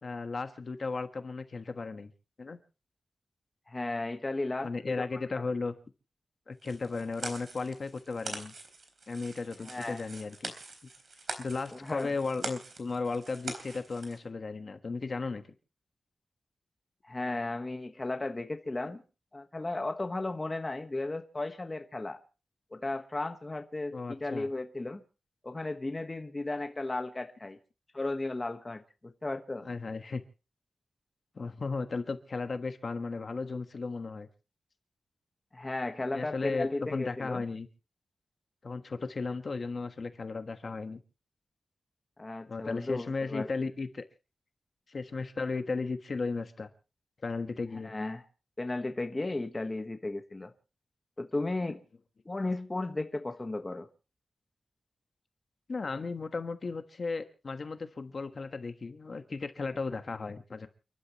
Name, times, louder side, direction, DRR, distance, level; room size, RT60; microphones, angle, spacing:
voice 1, 0.0-2.1 2.4-2.6 4.6-5.7 6.5-8.5 9.1-10.5 11.4-15.4 23.9-24.5 29.6-30.2 31.3-34.3 36.1-37.7 38.6-41.0 42.5-44.0 44.9-46.7 47.2-47.9 55.7-60.7, left 4 dB, 40° left, 1.3 m, -35 dB
voice 2, 3.7-4.9 5.3-5.4 9.6-10.0 11.7-12.1 17.0-19.0 19.3-22.2 22.7-25.0 25.4-27.6 27.9-29.6 35.5-37.4 42.2-43.5 47.8-48.2 48.6-50.5 51.2-51.8 52.2-53.9, left 2 dB, 20° left, 1.3 m, -35 dB
sound 1, 6.6-14.2, right 3 dB, 55° right, 3.7 m, -43 dB
30.0 x 12.0 x 3.0 m
wide cardioid pair, 165°, 0 cm